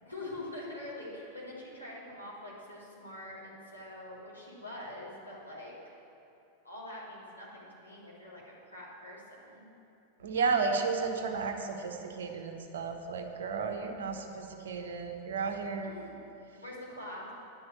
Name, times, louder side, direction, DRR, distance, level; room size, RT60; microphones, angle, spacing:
voice 1, 0.0-5.8 6.6-9.7 15.8-16.2 16.6-17.3, left 1 dB, 85° left, -7 dB, 3.0 m, -44 dB
voice 2, 10.2-15.9, right 5 dB, 60° right, 4 dB, 1.1 m, -33 dB
10.0 x 6.3 x 8.7 m, 2.8 s
figure-of-eight pair, 90°, 0 cm